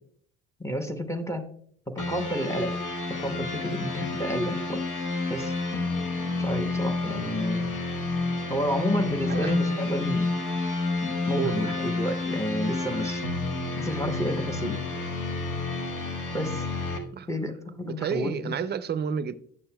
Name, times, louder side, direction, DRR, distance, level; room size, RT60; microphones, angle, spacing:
voice 1, 0.6-1.5 1.9-2.8 3.2-4.8 5.3-5.5 6.4-7.7 8.5-10.3 11.0-13.2 13.8-14.8 16.3-16.7 17.3-18.5, equal, 10° left, 0.8 m, -30 dB
sound 1, 2.0-17.0, left 3 dB, 85° left, 1.1 m, -29 dB
voice 2, 11.4-11.7 17.1-17.3 17.8-19.3, right 7 dB, 35° right, 0.4 m, -30 dB
9.6 x 6.7 x 2.2 m
cardioid pair, 90°, 30 cm